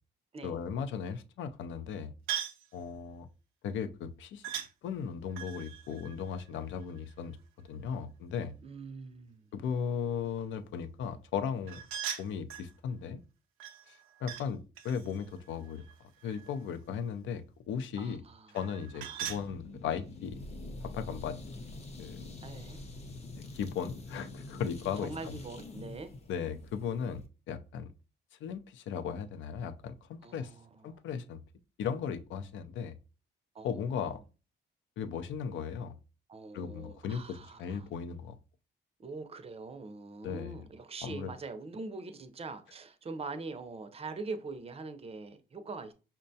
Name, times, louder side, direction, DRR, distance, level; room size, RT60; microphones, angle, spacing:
voice 1, 0.4-2.1 2.7-3.3 3.6-4.4 4.8-7.4 7.7-8.5 9.5-11.8 12.2-13.2 13.9-14.6 14.8-15.8 16.2-18.2 18.5-20.4 20.8-21.4 22.0-22.2 23.5-25.4 26.3-27.2 27.5-27.9 28.4-30.5 30.8-31.4 31.8-33.0 33.6-34.2 35.0-36.0 36.5-38.4 40.2-40.6 41.0-41.3, left 7 dB, 75° left, 0.5 m, -36 dB
sound 1, 2.3-2.7 4.4-4.7 5.3-7.1 11.7-12.7 13.6-14.5 14.8-16.7 18.5-19.5, right 9 dB, 90° right, 0.5 m, -40 dB
voice 2, 8.6-9.5 18.0-18.6 19.0-19.3 22.4-22.8 25.0-26.1 30.2-31.0 33.5-33.7 36.3-37.9 39.0-45.9, right 3 dB, 30° right, 0.5 m, -43 dB
sound 2, 19.3-27.3, left 2 dB, 30° left, 0.6 m, -46 dB
5.4 x 2.2 x 2.6 m
cardioid pair, 90°, 20 cm